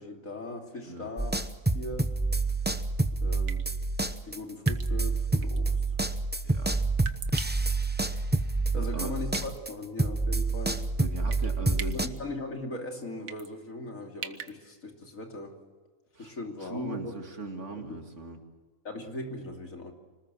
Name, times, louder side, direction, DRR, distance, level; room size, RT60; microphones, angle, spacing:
voice 1, 0.0-1.4 1.7-2.3 3.1-3.7 4.2-6.0 8.7-11.0 11.9-15.6 16.2-17.1 17.7-18.0 18.8-19.9, left 2 dB, 75° left, 3 dB, 3.3 m, -39 dB
sound 1, 1.2-9.7 10.0-12.1, right 3 dB, 10° right, 0.7 m, -28 dB
sound 2, 2.7-2.9 3.5-3.7 4.7-5.0 5.4-5.7 7.0-7.8 9.3-9.6 10.0-10.1 11.3-11.5 11.7-12.2 13.3-13.5 14.2-14.5, right 7 dB, 80° right, 1.6 m, -40 dB
voice 2, 6.4-6.8 8.7-9.1 11.0-12.0 16.1-16.4 16.6-18.4, right 2 dB, 60° right, 4 dB, 2.9 m, -38 dB
26.0 x 19.5 x 7.6 m, 1.4 s
omnidirectional pair, 1.4 m